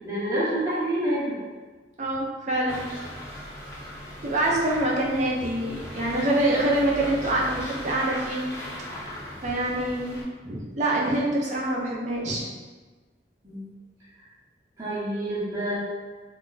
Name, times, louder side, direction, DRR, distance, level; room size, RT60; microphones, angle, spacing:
voice 1, 0.0-1.3 13.4-13.6 14.8-15.8, right 1 dB, 15° right, -11 dB, 0.8 m, -27 dB
voice 2, 2.0-2.8 4.2-8.5 9.4-10.2 10.4-12.4, right 1 dB, 40° right, -3 dB, 0.5 m, -25 dB
sound 1, 2.7-10.2, left 1 dB, 20° left, 0.7 m, -38 dB
2.3 x 2.0 x 3.8 m, 1.3 s
head